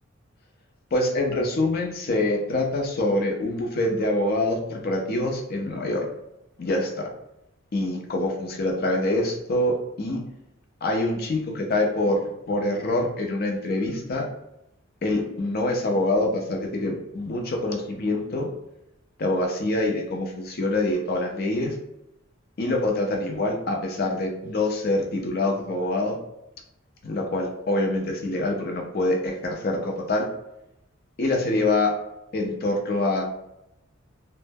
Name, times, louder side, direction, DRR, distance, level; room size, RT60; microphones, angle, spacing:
voice 1, 0.9-6.1 6.6-7.1 7.7-10.2 10.8-14.3 15.0-18.5 19.2-21.8 22.6-26.2 27.0-30.3 31.2-31.9 32.3-33.2, left 2 dB, 45° left, 1 dB, 0.5 m, -25 dB
2.1 x 2.0 x 3.3 m, 0.86 s
head